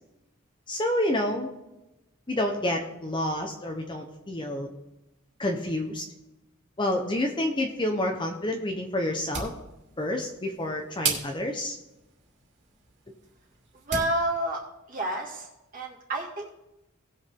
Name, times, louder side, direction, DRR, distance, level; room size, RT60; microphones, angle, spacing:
voice 1, 0.7-1.5 2.3-4.7 5.4-6.0 6.8-9.5 10.0-11.8, left 1 dB, 25° left, 2 dB, 1.0 m, -28 dB
sound 1, 9.1-14.2, right 5 dB, 60° right, 2.6 m, -37 dB
voice 2, 13.8-14.6 14.9-16.5, right 1 dB, 40° right, -3 dB, 2.4 m, -30 dB
18.5 x 6.3 x 3.8 m, 0.95 s
head